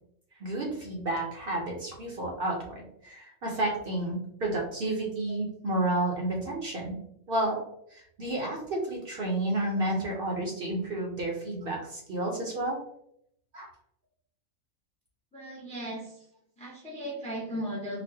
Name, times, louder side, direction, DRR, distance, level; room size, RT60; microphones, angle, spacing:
voice 1, 0.4-7.0 7.3-7.6 7.9-12.8 13.5-13.7, right 1 dB, 55° right, -1 dB, 0.7 m, -31 dB
voice 2, 15.3-16.2 16.6-18.0, equal, 10° left, -2 dB, 0.4 m, -36 dB
4.2 x 2.0 x 2.7 m, 0.72 s
omnidirectional pair, 1.4 m